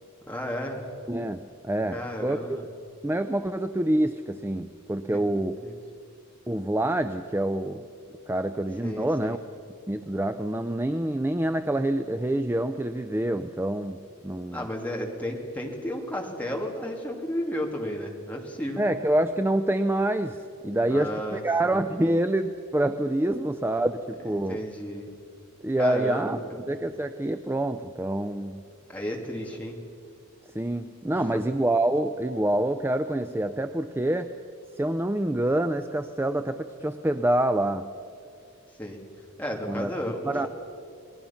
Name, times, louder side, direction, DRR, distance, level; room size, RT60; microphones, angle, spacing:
voice 1, 0.3-0.9 1.9-2.6 5.6-5.7 8.8-9.4 14.5-18.8 20.9-21.8 24.3-25.1 25.8-26.6 28.9-29.8 31.1-31.3 38.8-39.0 39.4-40.5, equal, 5° left, -1 dB, 2.6 m, -33 dB
voice 2, 1.1-2.4 3.0-5.6 6.5-7.9 8.3-9.4 9.9-14.7 18.8-24.6 25.6-28.6 30.5-34.3 34.8-37.9 39.7-39.9 40.2-40.5, right 1 dB, 10° right, 9 dB, 0.4 m, -26 dB
29.0 x 20.0 x 5.8 m, 2.5 s
head